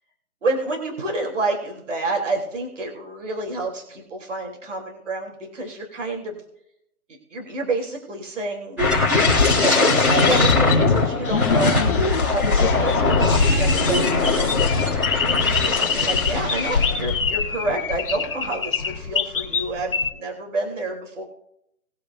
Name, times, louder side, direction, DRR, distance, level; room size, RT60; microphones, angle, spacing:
voice 1, 0.4-6.4 7.3-8.8 9.5-11.8 12.2-15.0 15.3-21.2, right 2 dB, 55° right, 1 dB, 3.4 m, -29 dB
sound 1, 8.8-17.3 17.6-17.9, left 3 dB, 5° right, 1.3 m, -20 dB
sound 2, 11.2-20.1, left 5 dB, 35° left, 1.5 m, -25 dB
21.0 x 7.5 x 2.6 m, 0.77 s
hypercardioid pair, 175°, 44 cm